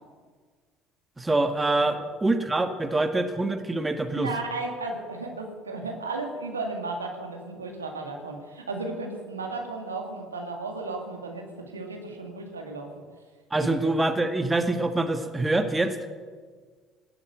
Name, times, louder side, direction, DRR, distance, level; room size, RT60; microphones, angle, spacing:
voice 1, 1.2-4.3 13.5-16.0, right 2 dB, 15° right, 7 dB, 1.6 m, -25 dB
voice 2, 4.1-12.9 13.6-14.0, right 3 dB, 85° right, 2 dB, 2.0 m, -34 dB
18.5 x 9.0 x 8.1 m, 1.6 s
figure-of-eight pair, 55°, 0 cm